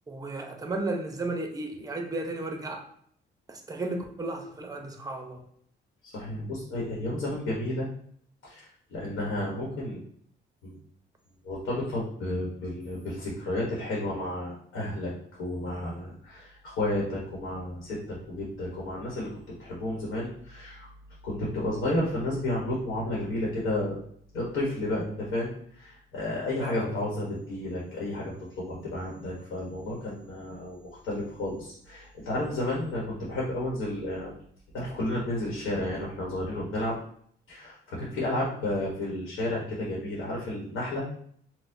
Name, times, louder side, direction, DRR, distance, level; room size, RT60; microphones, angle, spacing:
voice 1, 0.1-2.8 3.5-5.4 26.6-27.1, right 2 dB, 20° right, 3 dB, 0.6 m, -34 dB
voice 2, 6.0-7.9 8.4-10.0 10.6-10.8 11.4-15.1 15.4-19.3 19.6-20.9 21.2-24.0 24.3-25.5 25.7-30.8 31.0-34.3 34.7-36.9 37.5-41.0, left 1 dB, 80° left, -4 dB, 1.0 m, -32 dB
4.2 x 2.1 x 2.6 m, 0.63 s
cardioid pair, 90°, 20 cm